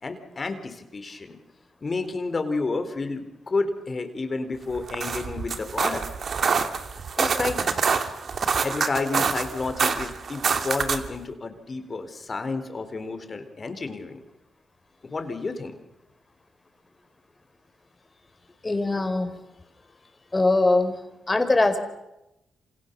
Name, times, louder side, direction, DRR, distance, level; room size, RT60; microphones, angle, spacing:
voice 1, 0.0-1.4 1.8-6.0 7.2-7.6 8.6-14.2 15.0-15.8, left 3 dB, 45° left, 8 dB, 4.1 m, -30 dB
sound 1, 4.7-11.2, right 5 dB, 60° right, 2.5 m, -26 dB
voice 2, 18.6-19.4 20.3-21.0 21.3-21.9, left 2 dB, 25° left, 8 dB, 4.7 m, -22 dB
28.0 x 27.0 x 6.9 m, 0.92 s
supercardioid pair, 50°, 0 cm